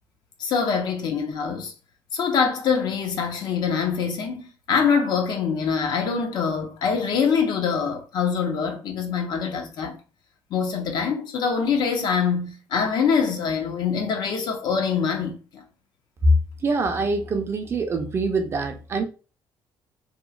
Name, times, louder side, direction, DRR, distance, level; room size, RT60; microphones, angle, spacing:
voice 1, 0.4-1.7 2.1-10.0 10.5-15.6, left 6 dB, 60° left, 0.6 m, -24 dB
voice 2, 16.6-19.0, right 4 dB, 30° right, 0.4 m, -25 dB
2.9 x 2.0 x 2.3 m
cardioid pair, 145°, 8 cm